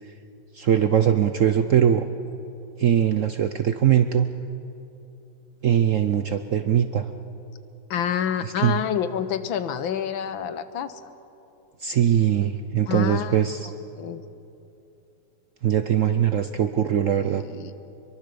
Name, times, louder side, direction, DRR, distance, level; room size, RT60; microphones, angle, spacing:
voice 1, 0.5-2.1 2.8-4.3 5.6-7.1 8.4-8.8 11.8-13.7 15.6-17.4, right 9 dB, 70° right, 9 dB, 0.7 m, -21 dB
voice 2, 7.9-11.0 12.9-13.4 14.0-14.2 17.1-17.7, left 8 dB, 80° left, 12 dB, 1.7 m, -28 dB
24.0 x 22.5 x 6.9 m, 2.9 s
omnidirectional pair, 2.1 m